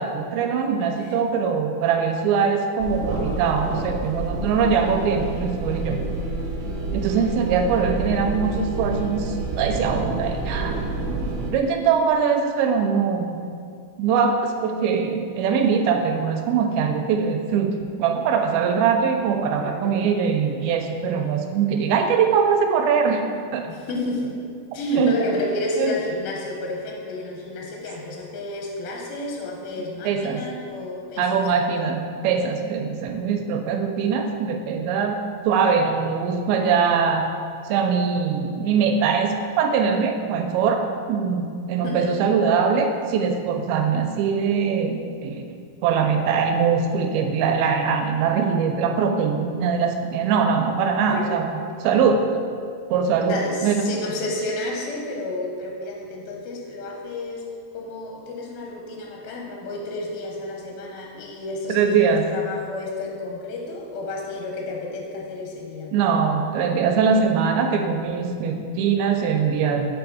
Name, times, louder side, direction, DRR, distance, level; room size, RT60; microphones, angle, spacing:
voice 1, 0.0-6.0 6.9-10.7 11.5-13.4 14.0-23.2 23.5-23.7 24.9-25.1 25.8-25.9 30.0-30.4 31.2-35.2 35.4-37.2 37.7-40.8 41.1-51.5 51.8-52.2 52.9-53.8 61.7-62.2 65.9-69.9, right 6 dB, 90° right, 4 dB, 2.5 m, -22 dB
sound 1, 2.8-11.5, right 2 dB, 75° right, 2.3 m, -28 dB
voice 2, 19.5-20.0 23.7-24.4 24.7-31.3 41.8-42.2 51.1-51.4 53.3-57.5 57.7-66.0, left 2 dB, 85° left, -1 dB, 2.4 m, -31 dB
7.3 x 3.5 x 4.8 m, 2.3 s
omnidirectional pair, 4.2 m